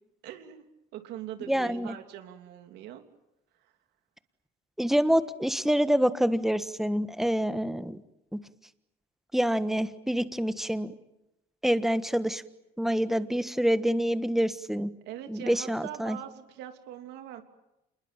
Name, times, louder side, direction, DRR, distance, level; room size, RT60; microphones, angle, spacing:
voice 1, 0.2-0.7 0.9-3.0 3.6-3.7 15.0-17.4, right 11 dB, 85° right, 6 dB, 3.1 m, -42 dB
voice 2, 1.5-1.9 4.8-8.0 8.3-8.4 9.3-10.9 11.6-12.4 12.8-14.9 15.3-16.2, equal, ahead, 12 dB, 1.4 m, -26 dB
28.0 x 21.0 x 9.0 m, 0.91 s
cardioid pair, 110°, 17 cm